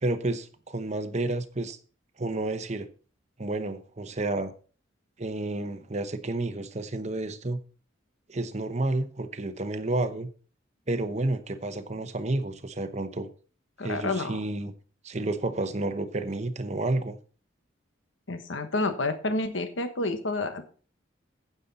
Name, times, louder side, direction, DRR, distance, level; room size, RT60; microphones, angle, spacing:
voice 1, 0.0-1.8 2.2-2.9 3.4-4.5 5.2-7.6 8.3-10.3 10.9-13.3 13.8-14.7 15.0-17.2, right 2 dB, 35° right, 0.8 m, -30 dB
voice 2, 13.8-14.4 18.3-20.6, left 2 dB, 75° left, 1.2 m, -29 dB
9.5 x 8.3 x 4.1 m
head